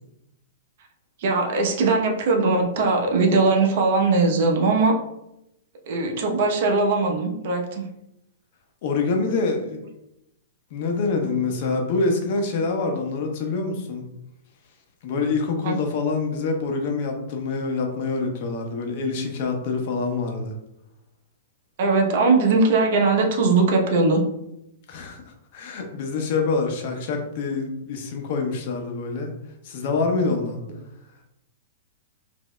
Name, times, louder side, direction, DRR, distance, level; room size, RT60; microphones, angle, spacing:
voice 1, 1.2-4.9 5.9-7.9 15.6-15.7 21.8-24.2, right 3 dB, 60° right, 2 dB, 0.8 m, -20 dB
voice 2, 8.8-9.8 10.7-14.0 15.0-20.5 24.9-25.2 25.5-29.3 29.6-30.6, left 3 dB, 55° left, 3 dB, 0.9 m, -26 dB
5.2 x 2.7 x 2.2 m, 0.84 s
hypercardioid pair, 125°, 0 cm